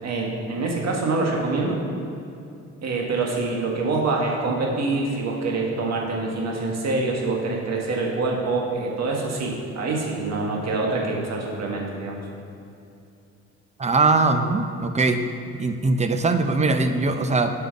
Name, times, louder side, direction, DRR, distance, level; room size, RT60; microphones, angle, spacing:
voice 1, 0.0-1.8 2.8-12.2, right 3 dB, 60° right, -1 dB, 1.6 m, -25 dB
voice 2, 13.8-15.2 15.5-17.5, right 3 dB, 25° right, 8 dB, 0.6 m, -21 dB
7.8 x 5.7 x 5.3 m, 2.6 s
cardioid pair, 90°, 30 cm